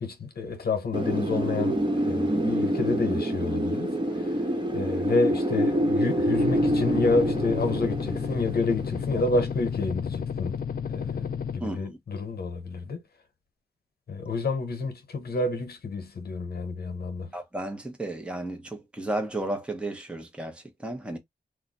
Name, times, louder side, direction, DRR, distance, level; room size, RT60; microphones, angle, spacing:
voice 1, 0.0-1.8 2.1-3.9 4.7-10.6 10.9-11.3 11.5-13.0 14.1-17.3, left 3 dB, 80° left, 0.9 m, -29 dB
Wind, 0.9-9.6, right 1 dB, 30° right, 1.2 m, -27 dB
sound 1, 6.3-11.6, left 7 dB, 65° left, 0.4 m, -32 dB
voice 2, 11.6-12.0 17.3-21.2, right 1 dB, 5° right, 0.8 m, -33 dB
2.4 x 2.2 x 3.9 m
wide cardioid pair, 75°, 16 cm